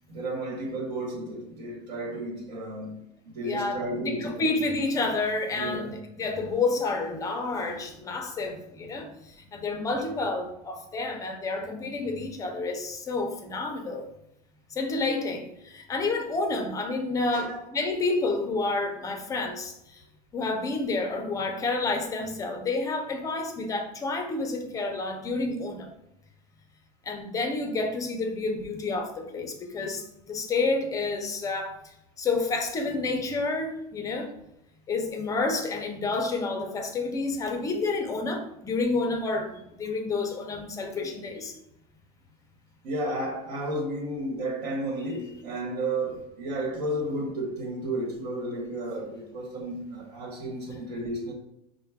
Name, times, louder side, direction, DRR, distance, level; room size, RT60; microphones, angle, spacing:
voice 1, 0.1-4.5 5.6-5.9 17.3-17.6 41.0-41.2 42.8-51.3, right 1 dB, 80° right, 1.2 m, -33 dB
voice 2, 3.4-5.9 6.2-14.1 14.7-20.0 20.3-25.9 27.0-31.8 32.2-34.3 34.9-41.6, left 3 dB, 15° left, 0.4 m, -29 dB
5.3 x 2.1 x 3.4 m
supercardioid pair, 150°, 20 cm